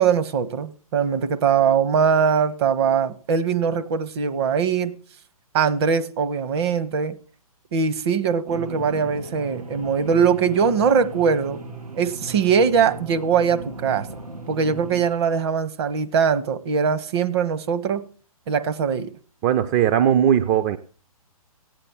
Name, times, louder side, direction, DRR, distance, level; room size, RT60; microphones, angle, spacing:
voice 1, 0.0-4.9 5.5-7.2 7.7-11.6 11.9-14.1 14.5-18.0 18.5-19.1, right 6 dB, 45° right, 1.1 m, -21 dB
sound 1, 8.5-15.0, right 2 dB, 90° right, 2.2 m, -37 dB
voice 2, 19.4-20.8, right 10 dB, 25° right, 0.6 m, -18 dB
15.0 x 9.0 x 7.0 m
figure-of-eight pair, 125°, 19 cm